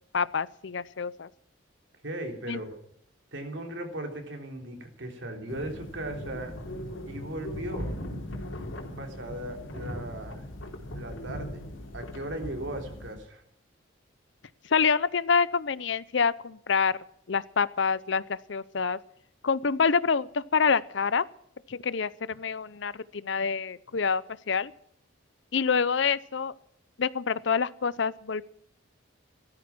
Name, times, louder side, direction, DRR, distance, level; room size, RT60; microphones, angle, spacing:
voice 1, 0.1-1.3 2.5-2.6 14.6-17.0 17.3-19.0 19.4-21.3 21.7-24.7 25.5-26.5 27.0-28.4, left 5 dB, 60° left, 18 dB, 0.6 m, -27 dB
voice 2, 2.0-2.8 3.3-6.5 7.1-7.9 9.0-10.5 10.9-11.6 11.9-13.4, right 1 dB, 65° right, 3 dB, 3.7 m, -37 dB
sound 1, 5.5-13.1, left 1 dB, 80° left, 3.5 m, -39 dB
17.0 x 13.5 x 6.1 m, 0.69 s
head